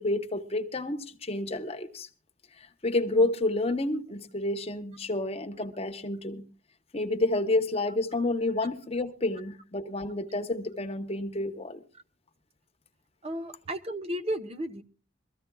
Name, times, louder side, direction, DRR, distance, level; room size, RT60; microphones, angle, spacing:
voice 1, 0.0-2.1 2.8-6.5 6.9-11.8, left 2 dB, 30° left, 1.0 m, -29 dB
voice 2, 13.2-14.8, equal, 30° right, 0.9 m, -33 dB
23.5 x 14.5 x 2.3 m
head